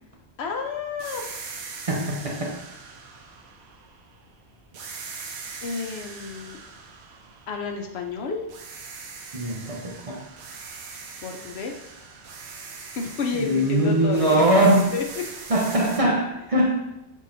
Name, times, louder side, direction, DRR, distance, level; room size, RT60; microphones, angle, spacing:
voice 1, 0.4-1.4 5.6-6.6 7.5-8.4 11.2-11.9 12.7-15.0, left 5 dB, 75° left, 3 dB, 0.9 m, -31 dB
sound 1, 1.0-4.3 4.7-8.1 8.5-16.0, right 4 dB, 80° right, 0.9 m, -41 dB
voice 2, 1.9-2.6 9.3-10.2 13.4-14.9 15.5-16.8, right 1 dB, 40° right, -1 dB, 0.6 m, -21 dB
5.7 x 3.6 x 2.6 m, 0.90 s
omnidirectional pair, 1.1 m